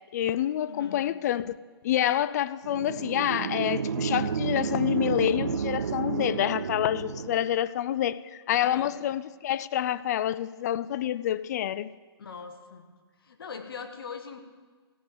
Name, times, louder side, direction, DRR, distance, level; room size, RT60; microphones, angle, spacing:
voice 1, 0.1-1.6 1.8-11.9, left 11 dB, 40° left, 0.4 m, -27 dB
voice 2, 0.7-1.0 8.6-8.9 12.2-12.8 13.2-14.4, left 6 dB, 65° left, 1.4 m, -41 dB
sound 1, 2.6-7.6, right 6 dB, 70° right, 0.5 m, -31 dB
16.0 x 6.0 x 6.8 m
figure-of-eight pair, 130°, 13 cm